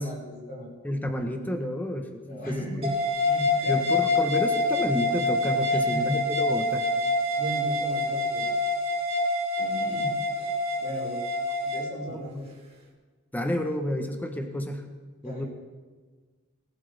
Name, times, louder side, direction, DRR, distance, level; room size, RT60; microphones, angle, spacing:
voice 1, 0.0-0.7 2.3-2.9 3.3-3.8 5.7-6.2 6.5-6.6 7.4-8.5 9.6-10.5 10.8-11.2 11.6-12.5 15.2-15.5, equal, 45° left, -3 dB, 5.3 m, -36 dB
voice 2, 0.8-2.9 3.7-6.9 12.1-12.2 13.3-14.8 15.2-15.5, left 1 dB, 10° left, 4 dB, 1.1 m, -30 dB
sound 1, 2.8-11.9, left 2 dB, 25° right, 2.3 m, -26 dB
20.0 x 12.0 x 3.5 m, 1.4 s
head